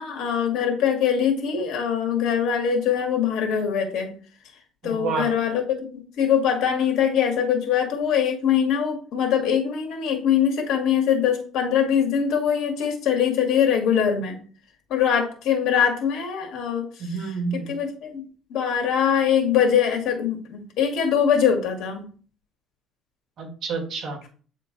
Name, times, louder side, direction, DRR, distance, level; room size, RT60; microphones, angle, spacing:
voice 1, 0.0-4.1 4.8-14.4 14.9-16.9 17.5-18.2 18.5-22.0, left 8 dB, 70° left, 3 dB, 1.9 m, -22 dB
voice 2, 4.8-5.3 17.0-17.7 23.4-24.2, right 4 dB, 55° right, 3 dB, 1.8 m, -29 dB
8.6 x 3.7 x 4.0 m, 0.41 s
cardioid pair, 145°, 0 cm